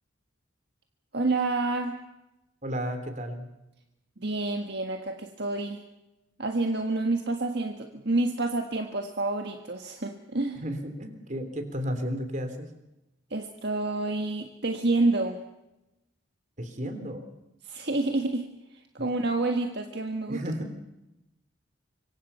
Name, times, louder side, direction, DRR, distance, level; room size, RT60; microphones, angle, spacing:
voice 1, 1.1-2.0 4.2-5.8 6.4-10.6 13.3-15.4 17.6-18.5 18.9-20.4, right 2 dB, 60° right, 4 dB, 1.7 m, -28 dB
voice 2, 2.6-3.5 10.5-12.7 16.6-17.2 19.0-19.1 20.3-20.7, equal, 40° right, 8 dB, 3.4 m, -33 dB
25.5 x 24.0 x 5.7 m, 0.93 s
head